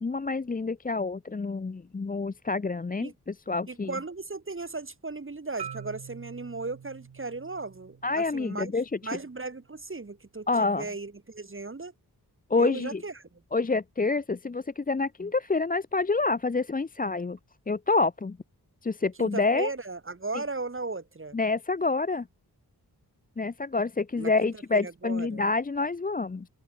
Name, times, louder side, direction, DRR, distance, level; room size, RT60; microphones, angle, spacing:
voice 1, 0.0-3.9 8.0-9.2 10.5-10.9 12.5-13.0 13.5-17.4 17.7-18.4 18.8-19.7 21.3-22.3 23.4-26.5, left 3 dB, 20° left, 0.5 m, -27 dB
voice 2, 3.7-8.7 9.0-11.9 12.6-13.4 19.2-21.4 24.2-25.4, right 3 dB, 30° right, 1.4 m, -36 dB
Marimba xylophone, 5.6-9.8, right 7 dB, 80° right, 1.1 m, -46 dB
open air
wide cardioid pair, 65°, 39 cm